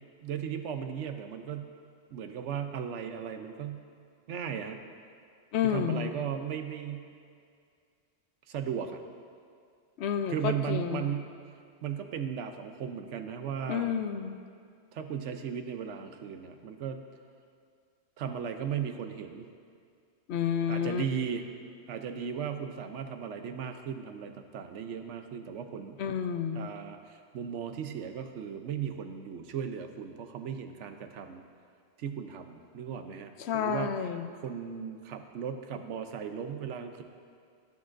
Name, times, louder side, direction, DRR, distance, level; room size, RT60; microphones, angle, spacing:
voice 1, 0.2-1.7 2.1-3.8 4.3-4.8 5.6-7.1 8.5-9.0 10.3-11.4 11.8-13.9 14.9-17.0 18.2-19.5 20.7-21.4 21.9-26.0 26.5-31.4 32.0-33.9 34.4-37.0, right 8 dB, 90° right, 7 dB, 1.0 m, -36 dB
voice 2, 5.5-6.1 10.0-11.1 13.7-14.4 20.3-21.0 26.0-26.7 33.4-34.3, left 8 dB, 70° left, 8 dB, 0.8 m, -30 dB
15.5 x 8.7 x 2.6 m, 2.3 s
omnidirectional pair, 1.2 m